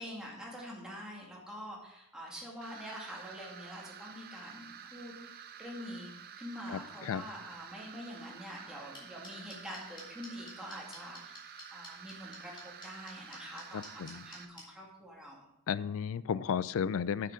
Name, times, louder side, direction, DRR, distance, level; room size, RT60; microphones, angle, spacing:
voice 1, 0.0-15.5, equal, 5° right, -3 dB, 2.1 m, -46 dB
sound 1, 2.6-14.4, right 8 dB, 45° right, 0.6 m, -50 dB
voice 2, 6.7-7.2 13.7-14.2 15.7-17.3, left 7 dB, 60° left, 18 dB, 0.3 m, -34 dB
sound 2, 8.9-14.6, left 2 dB, 20° left, 2.6 m, -48 dB
8.1 x 6.7 x 5.2 m, 0.87 s
head